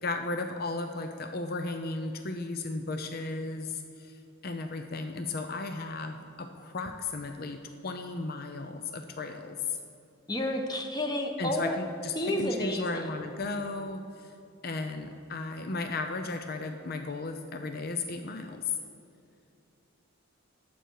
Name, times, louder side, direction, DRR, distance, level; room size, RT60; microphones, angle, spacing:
voice 1, 0.0-9.8 11.4-14.3 14.6-18.8, left 3 dB, 50° left, 6 dB, 0.6 m, -35 dB
voice 2, 10.3-11.7 12.2-13.0, left 1 dB, 20° left, 3 dB, 1.1 m, -30 dB
20.0 x 7.8 x 4.7 m, 2.5 s
head